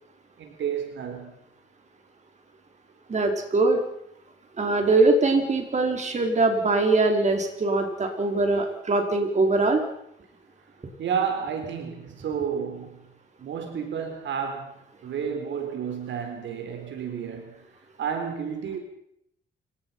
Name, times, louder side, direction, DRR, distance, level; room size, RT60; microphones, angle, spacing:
voice 1, 0.4-1.3 11.0-13.0 13.4-14.7 15.0-17.6 18.0-18.8, right 7 dB, 70° right, 4.2 m, -31 dB
voice 2, 3.1-3.8 4.6-9.8, right 3 dB, 35° right, 5.1 m, -22 dB
28.5 x 17.5 x 5.8 m
cardioid pair, 90°, 20 cm